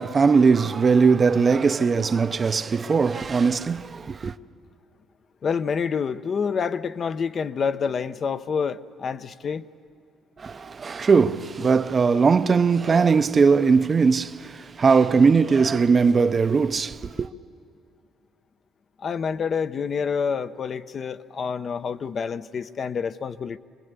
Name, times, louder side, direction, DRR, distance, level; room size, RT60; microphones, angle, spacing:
voice 1, 0.0-4.3 10.4-17.3, right 5 dB, 35° right, 0.6 m, -20 dB
voice 2, 5.4-9.7 19.0-23.6, left 6 dB, 45° left, 0.6 m, -27 dB
25.5 x 20.0 x 8.2 m
cardioid pair, 105°, 0 cm